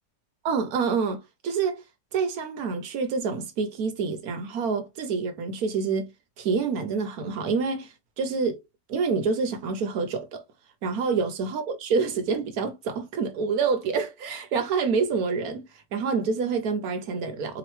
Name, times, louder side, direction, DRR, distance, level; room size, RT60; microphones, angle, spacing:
voice 1, 0.4-1.8 2.1-6.1 6.4-8.6 8.9-10.4 10.8-15.6 15.9-17.6, right 5 dB, 70° right, 1.2 m, -27 dB
4.4 x 3.0 x 3.0 m
omnidirectional pair, 1.8 m